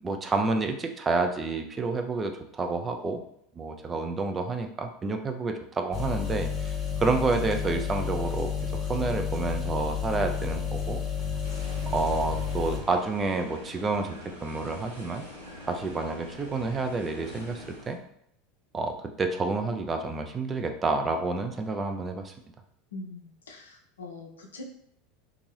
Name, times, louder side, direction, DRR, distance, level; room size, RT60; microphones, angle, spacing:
voice 1, 0.0-3.2 3.6-8.5 8.9-11.0 11.9-14.2 14.4-15.3 15.7-18.0 18.7-22.3, right 3 dB, 20° right, 5 dB, 0.4 m, -29 dB
sound 1, 5.9-12.8, left 6 dB, 30° left, 0.7 m, -31 dB
sound 2, 11.4-17.9, left 1 dB, 90° right, 0.8 m, -44 dB
voice 2, 22.9-24.6, left 3 dB, 75° left, 2 dB, 0.5 m, -43 dB
2.6 x 2.5 x 3.1 m, 0.69 s
figure-of-eight pair, 80°, 0 cm